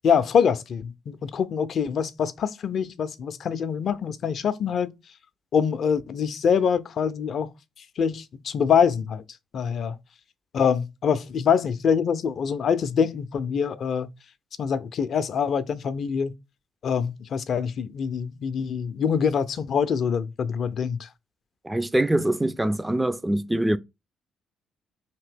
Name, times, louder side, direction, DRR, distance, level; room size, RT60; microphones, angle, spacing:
voice 1, 0.0-4.9 5.5-7.5 8.0-9.2 9.5-10.0 10.5-14.1 14.6-16.3 16.8-21.1, left 7 dB, 55° left, 0.4 m, -24 dB
voice 2, 21.6-23.8, right 1 dB, 15° right, 0.3 m, -24 dB
2.9 x 2.7 x 3.4 m
hypercardioid pair, 45°, 0 cm